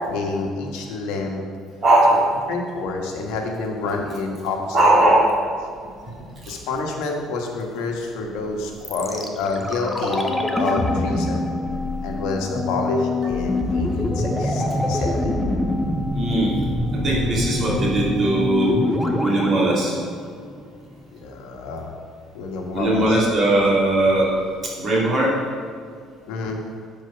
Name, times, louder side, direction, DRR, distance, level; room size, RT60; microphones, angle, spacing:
voice 1, 0.1-1.4 2.5-4.8 5.0-5.1 6.5-11.5 12.0-15.5 21.1-21.9 22.3-23.2 26.3-26.6, left 3 dB, 90° left, 1 dB, 1.4 m, -28 dB
voice 2, 1.8-2.4 4.7-5.3 6.4-6.5 10.0-10.1 16.1-16.5 16.9-18.8 19.2-20.0 22.7-24.4 24.8-25.4, right 1 dB, 35° right, -5 dB, 2.6 m, -19 dB
sound 1, 8.8-20.8 21.1-21.2, left 1 dB, 5° left, 0.7 m, -25 dB
12.0 x 4.7 x 5.7 m, 2.1 s
cardioid pair, 155°, 0 cm